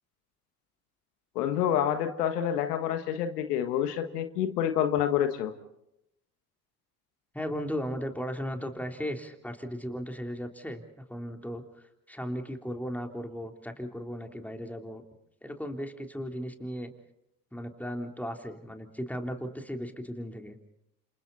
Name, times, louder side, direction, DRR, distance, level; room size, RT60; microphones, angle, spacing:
voice 1, 1.3-5.5, left 10 dB, 85° left, 8 dB, 1.6 m, -28 dB
voice 2, 7.3-11.6 12.1-15.0 15.4-16.9 17.5-20.6, equal, 5° left, 4 dB, 3.6 m, -36 dB
30.0 x 27.0 x 4.2 m, 0.84 s
hypercardioid pair, 55°, 46 cm